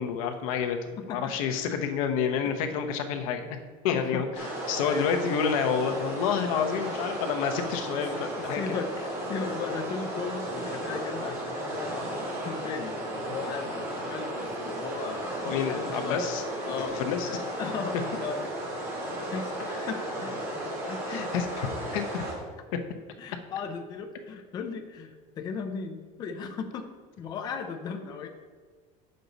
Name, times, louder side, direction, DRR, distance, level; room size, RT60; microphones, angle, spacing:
voice 1, 0.0-3.6 3.8-8.6 15.5-16.4 16.8-17.3 21.1-22.2, left 7 dB, 85° left, 6 dB, 0.9 m, -29 dB
voice 2, 1.0-1.3 3.9-4.2 4.8-5.1 7.6-7.7 8.4-16.2 16.7-18.5 19.2-19.5 19.9-21.3 23.2-26.9 27.2-28.3, left 5 dB, 25° left, 5 dB, 0.6 m, -37 dB
sound 1, 4.3-22.3, right 1 dB, 15° right, 2.4 m, -34 dB
9.0 x 6.6 x 4.0 m, 1.5 s
cardioid pair, 180°, 17 cm